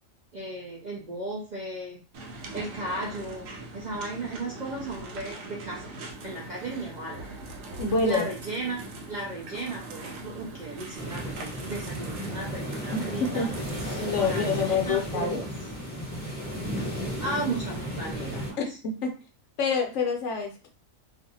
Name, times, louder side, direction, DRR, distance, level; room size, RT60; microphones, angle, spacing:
voice 1, 0.3-2.0 2.5-5.8 6.2-7.2 8.0-8.8 9.1-13.5 13.9-15.4 17.2-18.6, right 2 dB, 60° right, -2 dB, 0.4 m, -35 dB
sound 1, 2.1-14.4, right 2 dB, 80° right, 1.0 m, -41 dB
voice 2, 7.8-8.3 12.9-13.5 14.0-15.5 18.6-19.1 19.6-20.7, left 4 dB, 70° left, 2 dB, 0.9 m, -27 dB
sound 2, 11.0-18.5, equal, 10° left, 0.9 m, -34 dB
2.5 x 2.4 x 2.6 m, 0.35 s
omnidirectional pair, 1.4 m